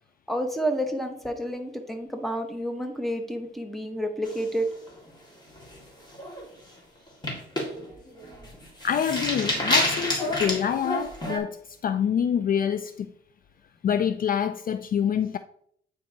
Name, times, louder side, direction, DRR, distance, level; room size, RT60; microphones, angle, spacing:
voice 1, 0.3-4.7, equal, ahead, 1.1 m, -29 dB
sound 1, 4.2-5.1 5.5-5.8 6.1-6.4 7.1-11.4, left 1 dB, 20° left, 2.1 m, -28 dB
voice 2, 8.8-11.6 11.8-13.1 13.8-15.4, left 8 dB, 45° left, 0.4 m, -26 dB
9.1 x 4.6 x 2.9 m
cardioid pair, 90°, 20 cm